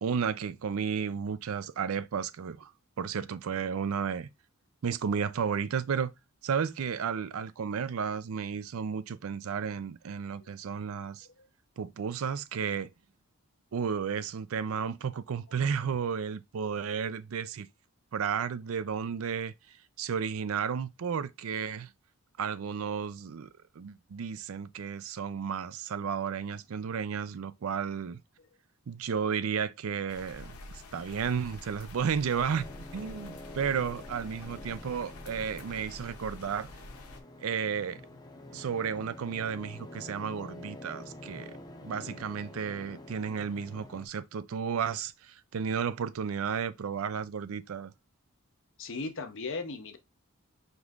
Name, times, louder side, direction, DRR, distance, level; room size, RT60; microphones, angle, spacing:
voice 1, 0.0-2.7 3.0-4.3 4.8-6.1 6.4-11.3 11.8-12.9 13.7-17.7 18.1-21.9 22.4-28.2 28.9-30.6 30.9-32.7 32.9-36.7 37.4-38.0 38.5-47.9, right 6 dB, 70° right, 0.4 m, -33 dB
sound 1, 30.1-37.2, left 2 dB, 90° left, 0.8 m, -47 dB
sound 2, 32.5-44.1, left 1 dB, 20° left, 0.5 m, -47 dB
voice 2, 48.8-50.0, left 3 dB, 60° left, 0.7 m, -38 dB
5.2 x 3.1 x 2.4 m
head